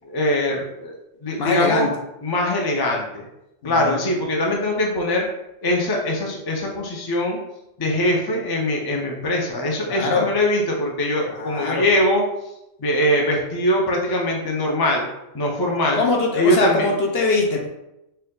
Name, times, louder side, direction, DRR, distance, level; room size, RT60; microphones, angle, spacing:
voice 1, 0.0-0.9 1.2-1.9 2.2-3.3 3.6-5.3 5.6-7.4 7.8-12.2 12.8-15.1 15.3-16.0 16.3-16.9, left 1 dB, 30° left, 0 dB, 0.5 m, -22 dB
voice 2, 1.4-1.9 3.6-4.0 9.9-10.3 11.3-11.9 15.9-17.7, left 3 dB, 55° left, 0 dB, 0.9 m, -22 dB
4.5 x 2.5 x 3.8 m, 0.88 s
omnidirectional pair, 1.3 m